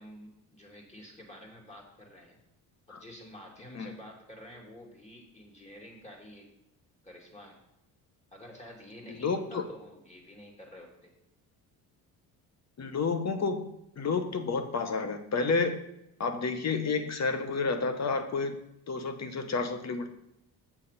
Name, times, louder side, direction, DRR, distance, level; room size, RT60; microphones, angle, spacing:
voice 1, 0.0-2.4 2.9-6.5 7.0-7.6 8.3-11.1, left 1 dB, 15° left, -1 dB, 2.6 m, -49 dB
voice 2, 9.1-9.6 12.8-13.6 14.0-15.9 16.2-18.6 18.9-20.1, left 4 dB, 40° left, 8 dB, 1.1 m, -30 dB
7.2 x 6.9 x 4.2 m, 0.84 s
supercardioid pair, 75°, 41 cm